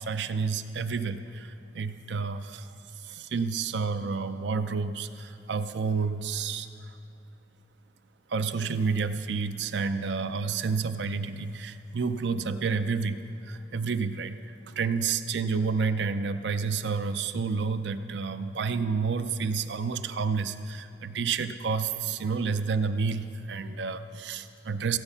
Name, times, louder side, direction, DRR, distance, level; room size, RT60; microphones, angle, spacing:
voice 1, 0.0-1.5 1.7-2.6 3.1-6.7 8.3-13.2 13.5-14.4 14.8-25.0, right 5 dB, 75° right, 10 dB, 0.5 m, -29 dB
15.5 x 8.9 x 5.6 m, 2.5 s
head